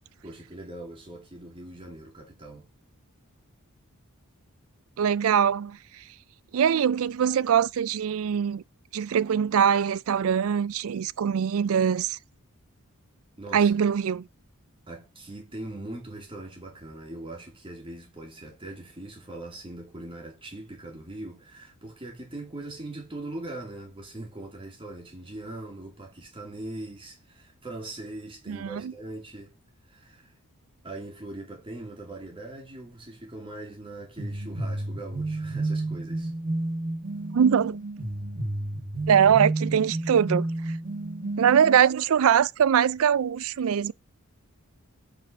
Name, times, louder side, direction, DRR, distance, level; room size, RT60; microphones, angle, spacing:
voice 1, 0.2-2.7 13.4-13.7 14.9-29.5 29.9-30.3 30.8-36.3, right 2 dB, 25° right, 2.7 m, -41 dB
voice 2, 5.0-5.8 6.5-8.6 8.9-12.2 13.5-14.3 28.5-28.9 37.3-37.8 39.1-40.5 41.4-43.9, right 8 dB, 65° right, 0.4 m, -22 dB
sound 1, 34.2-41.8, right 2 dB, 40° right, 1.2 m, -31 dB
5.4 x 5.2 x 6.1 m
head